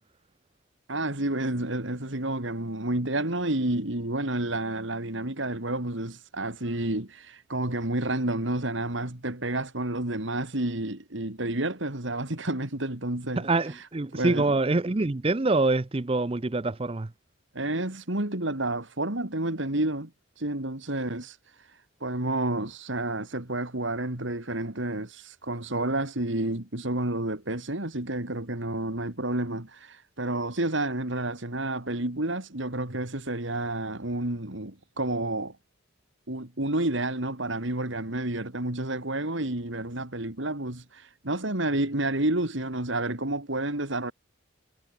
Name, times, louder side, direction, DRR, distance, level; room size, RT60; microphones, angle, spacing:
voice 1, 0.9-14.6 17.5-20.1 20.4-35.6 36.3-44.1, right 1 dB, 65° right, 2.9 m, -30 dB
voice 2, 13.4-17.1, right 2 dB, 25° right, 0.6 m, -25 dB
head